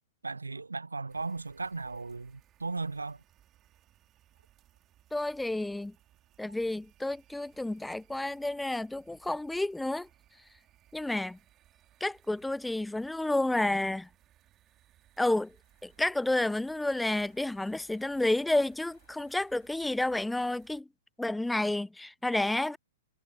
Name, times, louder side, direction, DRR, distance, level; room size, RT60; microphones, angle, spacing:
voice 1, 0.2-3.2, right 3 dB, 75° right, 0.9 m, -36 dB
sound 1, 1.1-20.8, right 13 dB, 25° right, 3.8 m, -64 dB
voice 2, 5.1-5.9 6.4-10.1 10.9-11.4 12.0-14.1 15.2-15.5 15.8-20.9 21.2-22.8, left 2 dB, 5° left, 0.4 m, -30 dB
sound 2, 14.8-20.4, left 14 dB, 50° left, 7.5 m, -70 dB
figure-of-eight pair, 110°, 0 cm